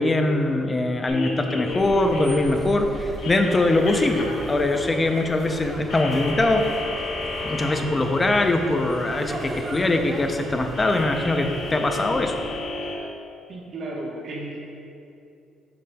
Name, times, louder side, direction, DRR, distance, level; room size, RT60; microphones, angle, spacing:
voice 1, 0.0-6.7 7.4-12.4, left 2 dB, 20° left, 5 dB, 0.4 m, -22 dB
sound 1, 1.1-13.0, left 2 dB, 80° left, 1.3 m, -34 dB
sound 2, 1.6-12.7, right 1 dB, 25° right, 0.6 m, -38 dB
voice 2, 13.5-14.8, right 2 dB, 45° right, -3 dB, 1.1 m, -34 dB
8.4 x 5.7 x 2.2 m, 2.6 s
cardioid pair, 150°, 0 cm